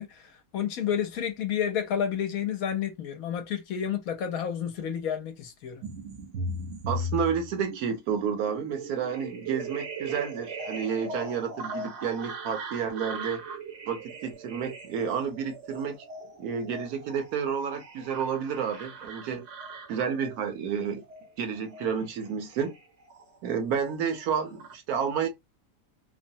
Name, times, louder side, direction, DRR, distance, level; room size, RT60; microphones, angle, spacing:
voice 1, 0.0-5.8, left 8 dB, 70° left, 1.0 m, -30 dB
sound 1, 5.8-23.6 23.9-24.7, right 2 dB, 55° right, 0.8 m, -39 dB
voice 2, 6.9-13.4 13.9-16.0 16.4-19.5 19.9-21.0 21.4-22.7 23.4-25.3, right 7 dB, 75° right, 1.1 m, -30 dB
3.0 x 2.1 x 2.6 m
omnidirectional pair, 1.6 m